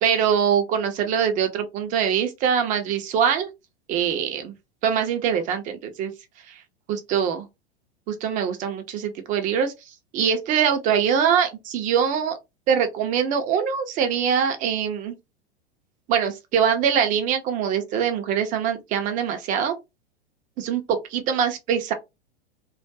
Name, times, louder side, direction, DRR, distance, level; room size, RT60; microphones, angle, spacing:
voice 1, 0.0-3.5 3.9-4.5 4.8-6.1 6.5-6.6 6.9-7.5 8.1-9.7 10.1-12.4 12.7-15.2 16.1-19.8 20.6-21.9, right 8 dB, 25° right, 0.5 m, -23 dB
2.3 x 2.1 x 2.6 m
figure-of-eight pair, 95°, 33 cm